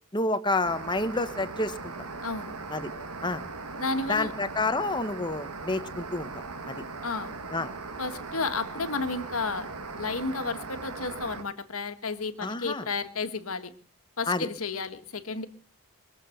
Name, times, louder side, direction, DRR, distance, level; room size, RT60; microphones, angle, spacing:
voice 1, 0.1-1.9 2.7-2.9 3.2-3.5 4.1-6.3 6.7-6.8 7.5-7.7 12.4-12.9 14.3-14.5, left 2 dB, 20° left, 11 dB, 1.1 m, -29 dB
sound 1, 0.6-11.4, right 3 dB, 90° right, 1.7 m, -39 dB
voice 2, 2.2-2.6 3.8-4.3 7.0-7.3 8.0-9.7 10.0-13.7 14.2-15.5, left 4 dB, 70° left, 9 dB, 1.7 m, -32 dB
23.0 x 7.9 x 7.9 m, 0.43 s
head